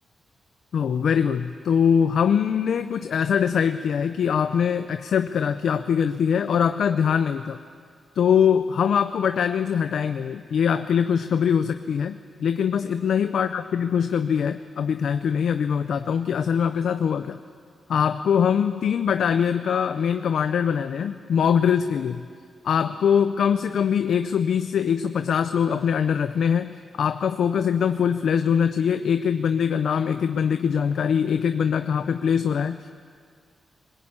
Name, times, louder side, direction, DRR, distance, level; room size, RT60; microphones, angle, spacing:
voice 1, 0.7-7.6 8.2-17.4 17.9-22.3 22.6-32.9, left 7 dB, 70° left, 9 dB, 0.6 m, -23 dB
22.0 x 20.5 x 8.8 m, 2.1 s
wide cardioid pair, 160°, 0 cm